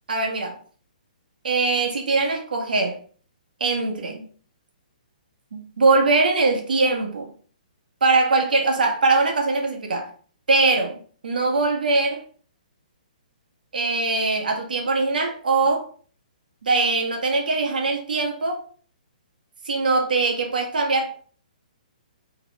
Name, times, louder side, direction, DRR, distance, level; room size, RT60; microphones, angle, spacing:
voice 1, 0.1-0.6 1.4-3.0 3.6-4.3 5.5-7.3 8.0-10.1 10.5-12.2 13.7-15.9 16.6-18.6 19.6-21.1, right 3 dB, 80° right, 1.5 m, -22 dB
3.9 x 3.5 x 3.4 m
hypercardioid pair, 165°, 5 cm